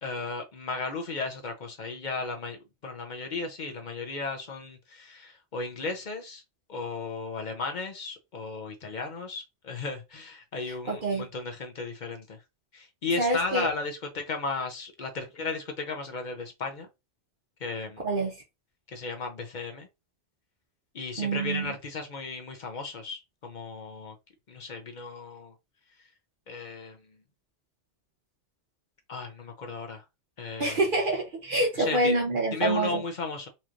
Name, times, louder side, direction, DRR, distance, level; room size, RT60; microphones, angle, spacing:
voice 1, 0.0-6.4 6.7-12.4 12.7-16.9 17.6-18.0 18.9-19.9 20.9-24.2 24.5-25.5 26.5-27.0 29.1-30.0 30.4-30.8 31.8-32.2 32.5-33.5, left 3 dB, 45° left, 0.8 m, -35 dB
voice 2, 10.7-11.3 13.2-13.7 18.0-18.4 21.2-21.7 30.6-33.0, right 2 dB, 50° right, 0.9 m, -27 dB
4.3 x 3.0 x 2.5 m
omnidirectional pair, 1.2 m